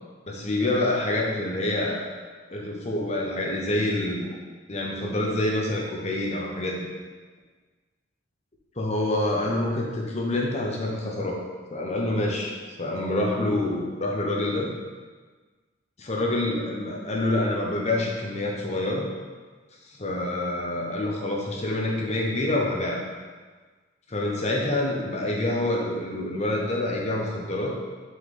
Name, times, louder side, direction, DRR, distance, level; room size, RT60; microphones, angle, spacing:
voice 1, 0.3-2.1 2.5-4.3 4.7-6.8 8.8-11.4 11.7-14.7 16.0-19.1 20.0-23.1 24.1-27.7, left 1 dB, 35° left, -1 dB, 0.9 m, -27 dB
6.3 x 4.6 x 3.8 m, 1.4 s
head